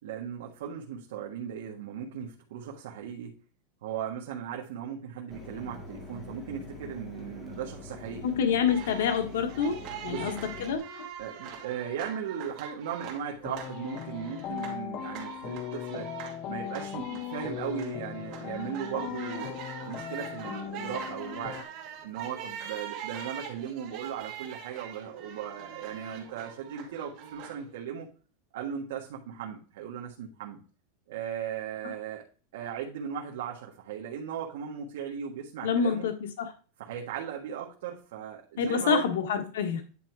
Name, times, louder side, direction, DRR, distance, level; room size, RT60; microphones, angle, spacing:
voice 1, 0.0-3.4 3.8-8.3 10.1-10.4 11.2-16.1 16.5-21.6 22.0-28.1 28.5-30.6 31.1-32.3 32.5-36.1 36.8-39.1, right 8 dB, 70° right, -1 dB, 1.5 m, -37 dB
Mechanisms, 5.3-10.8, left 2 dB, 10° left, 1.8 m, -44 dB
voice 2, 8.2-9.8 10.0-10.8 35.6-36.1 36.4-36.5 38.6-39.8, left 6 dB, 80° left, 5 dB, 1.4 m, -27 dB
sound 1, 8.7-27.8, right 8 dB, 35° right, 2.5 m, -43 dB
sound 2, 13.4-21.6, left 10 dB, 30° left, 0.6 m, -38 dB
10.0 x 3.5 x 4.7 m, 0.38 s
supercardioid pair, 170°, 0 cm